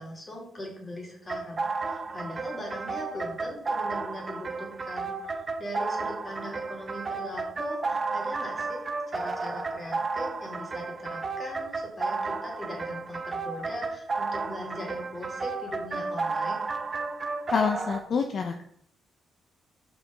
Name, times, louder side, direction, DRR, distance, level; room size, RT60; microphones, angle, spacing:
voice 1, 0.0-16.6, left 1 dB, 25° left, -1 dB, 3.1 m, -40 dB
sound 1, 1.3-18.0, right 4 dB, 30° right, 0.9 m, -32 dB
voice 2, 17.5-18.6, left 6 dB, 55° left, 4 dB, 0.7 m, -27 dB
5.7 x 5.6 x 5.4 m, 0.67 s
cardioid pair, 90°, 0 cm